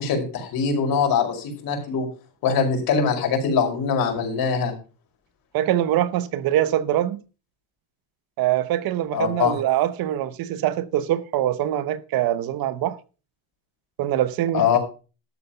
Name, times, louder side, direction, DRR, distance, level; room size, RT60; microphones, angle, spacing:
voice 1, 0.0-2.1 2.4-4.7 9.1-9.6 14.5-14.8, left 6 dB, 55° left, 5.3 m, -22 dB
voice 2, 5.5-7.2 8.4-13.0 14.0-14.8, right 12 dB, 55° right, 0.9 m, -23 dB
13.0 x 7.7 x 5.6 m
cardioid pair, 145°, 42 cm